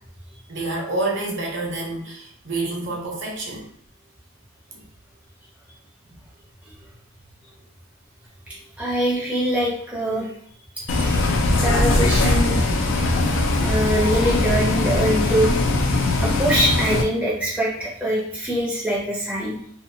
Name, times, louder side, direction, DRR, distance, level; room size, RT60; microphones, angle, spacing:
voice 1, 0.5-3.7 4.7-4.8 6.0-6.1, right 2 dB, 55° right, -1 dB, 0.8 m, -28 dB
voice 2, 8.5-10.3 11.6-12.6 13.1-13.2 13.6-15.5 16.2-19.6, equal, 5° right, -5 dB, 0.6 m, -23 dB
Bus, 10.9-17.0, left 2 dB, 60° left, 0.4 m, -20 dB
2.7 x 2.4 x 2.6 m, 0.65 s
head